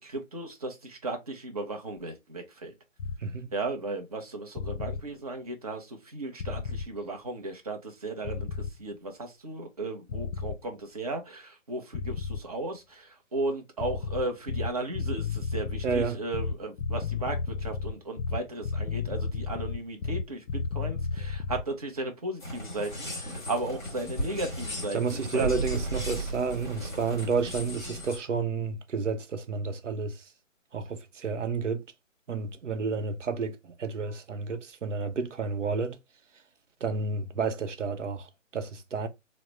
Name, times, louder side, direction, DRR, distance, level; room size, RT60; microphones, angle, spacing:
voice 1, 0.0-2.7 3.5-25.6, right 2 dB, 30° right, 0.6 m, -35 dB
sound 1, 3.0-3.2 4.6-5.0 6.4-6.9 8.2-8.8 10.1-10.6 11.9-12.5 13.8-21.7, left 5 dB, 85° left, 0.5 m, -32 dB
voice 2, 3.2-3.5 15.8-16.2 24.9-30.3 30.7-31.8 32.3-36.0 36.8-39.1, right 5 dB, 65° right, 0.7 m, -31 dB
sound 2, 22.4-28.2, right 1 dB, 10° left, 1.0 m, -35 dB
4.0 x 2.0 x 3.1 m
figure-of-eight pair, 155°, 39 cm